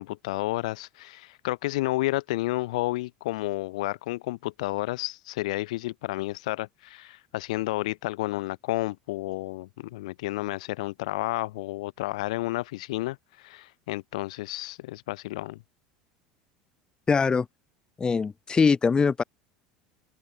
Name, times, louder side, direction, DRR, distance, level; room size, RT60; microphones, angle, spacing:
voice 1, 0.0-15.6, left 19 dB, 65° left, 1.5 m, -31 dB
voice 2, 17.1-17.5 18.0-19.2, left 5 dB, 20° left, 0.8 m, -22 dB
open air
figure-of-eight pair, 70°, 4 cm